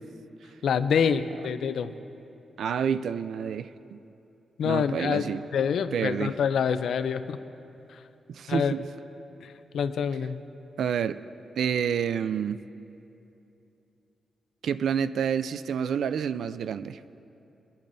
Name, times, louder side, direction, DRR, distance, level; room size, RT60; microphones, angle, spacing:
voice 1, 0.6-1.9 4.6-5.3 5.5-7.4 7.9-8.0 8.5-8.7 9.4-10.4, left 7 dB, 75° left, 11 dB, 0.5 m, -26 dB
voice 2, 2.6-4.0 4.6-5.4 5.9-6.3 8.3-8.8 10.8-11.2 11.6-12.6 14.6-17.0, right 7 dB, 80° right, 14 dB, 0.3 m, -28 dB
22.0 x 11.5 x 2.7 m, 2.8 s
wide cardioid pair, 160°, 0 cm